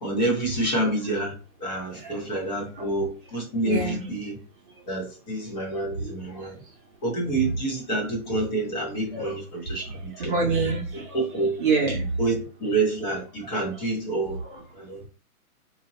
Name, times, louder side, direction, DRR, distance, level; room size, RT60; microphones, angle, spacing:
voice 1, 0.0-1.3 1.6-4.4 4.9-6.5 7.0-10.3 10.9-11.6 11.9-14.4 14.8-15.1, right 2 dB, 30° left, -2 dB, 1.2 m, -28 dB
voice 2, 3.6-4.0 6.0-6.1 9.1-9.3 10.2-11.2 11.6-12.1, right 4 dB, 35° right, 0 dB, 0.9 m, -26 dB
2.8 x 2.7 x 4.0 m, 0.36 s
hypercardioid pair, 165°, 43 cm